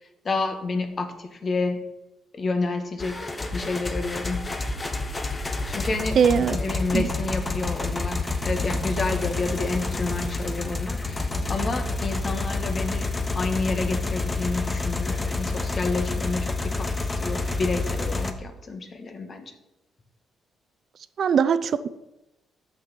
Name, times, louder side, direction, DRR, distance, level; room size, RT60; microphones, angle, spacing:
voice 1, 0.0-1.8 2.3-4.5 5.7-19.5, left 3 dB, 40° left, 8 dB, 1.3 m, -30 dB
sound 1, 3.0-18.3, left 2 dB, 20° left, 0.9 m, -28 dB
voice 2, 6.2-6.6 6.9-7.1 21.2-21.9, right 7 dB, 55° right, 14 dB, 0.5 m, -20 dB
6.5 x 6.2 x 6.7 m, 0.95 s
cardioid pair, 90°, 0 cm